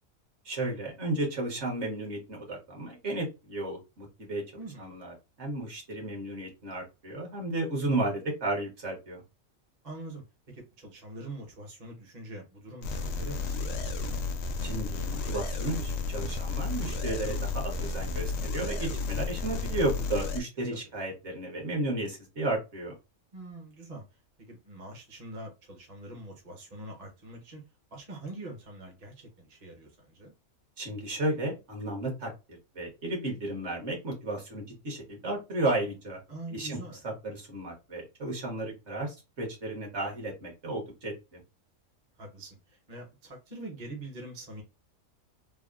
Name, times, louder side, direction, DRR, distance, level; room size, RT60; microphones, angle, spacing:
voice 1, 0.4-4.4 4.8-9.2 14.6-22.9 30.8-32.3 32.7-36.2 36.5-36.8 37.0-41.4, right 2 dB, 55° right, 1.4 m, -33 dB
voice 2, 4.6-5.0 9.8-14.2 20.7-20.8 23.3-24.0 24.4-27.6 27.9-30.3 36.3-37.0 42.2-44.6, right 2 dB, 35° right, 0.8 m, -44 dB
sound 1, 12.8-20.4, left 3 dB, 70° left, 0.8 m, -32 dB
3.4 x 2.1 x 2.4 m
omnidirectional pair, 1.5 m